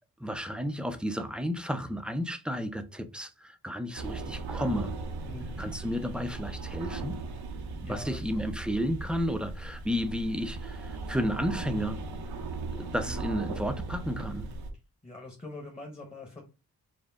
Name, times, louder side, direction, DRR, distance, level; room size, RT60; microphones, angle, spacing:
voice 1, 0.2-4.9 5.6-7.2 7.9-12.0 12.7-14.5, equal, 5° right, 0.4 m, -32 dB
sound 1, 4.0-14.7, right 3 dB, 90° right, 0.7 m, -37 dB
voice 2, 5.2-5.5 7.8-8.2 13.0-13.2 15.0-16.4, left 2 dB, 15° left, 0.9 m, -43 dB
5.0 x 2.0 x 3.4 m
cardioid pair, 90°, 36 cm